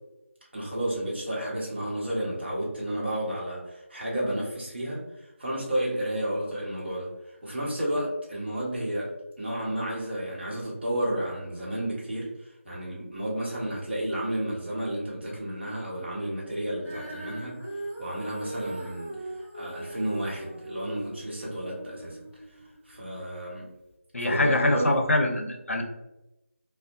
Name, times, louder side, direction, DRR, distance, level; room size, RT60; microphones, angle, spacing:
voice 1, 0.5-9.1 9.4-17.6 18.0-22.2 22.9-23.6 24.2-24.9, right 1 dB, 50° right, -5 dB, 0.9 m, -32 dB
Female singing, 16.8-23.1 23.8-23.9, right 2 dB, 5° right, 0.7 m, -40 dB
voice 2, 24.1-25.8, left 1 dB, 70° left, 3 dB, 0.5 m, -24 dB
2.7 x 2.1 x 2.5 m, 0.95 s
figure-of-eight pair, 170°, 7 cm